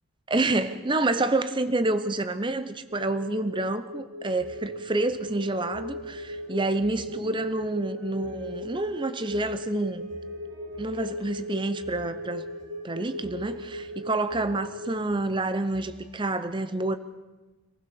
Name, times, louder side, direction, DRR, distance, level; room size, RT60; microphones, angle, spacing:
voice 1, 0.3-10.1 10.8-12.5 12.8-17.0, right 2 dB, 25° right, 12 dB, 0.7 m, -28 dB
sound 1, 2.9-14.9, left 1 dB, 90° right, 2.1 m, -38 dB
sound 2, 4.4-16.2, equal, 55° right, 6.2 m, -53 dB
26.0 x 15.5 x 7.0 m, 1.2 s
head